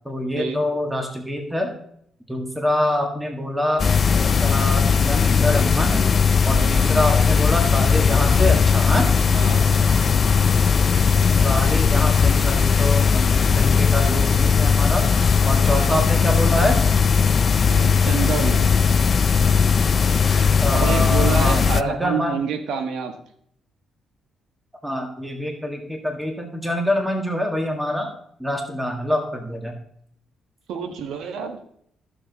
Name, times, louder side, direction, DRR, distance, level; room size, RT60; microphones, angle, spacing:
voice 1, 0.1-1.7 2.3-3.9 4.4-6.0 6.5-9.1 11.2-15.0 15.4-16.8 20.6-22.3 24.8-28.1 28.4-29.8, left 1 dB, 5° right, 3 dB, 1.8 m, -25 dB
sound 1, 3.8-21.8, left 6 dB, 45° left, 0.4 m, -18 dB
voice 2, 6.5-6.9 9.3-9.9 15.7-16.0 17.7-18.7 20.7-23.1 30.7-31.6, right 6 dB, 80° right, 7 dB, 1.4 m, -28 dB
14.0 x 6.7 x 4.1 m, 0.68 s
cardioid pair, 90°, 0 cm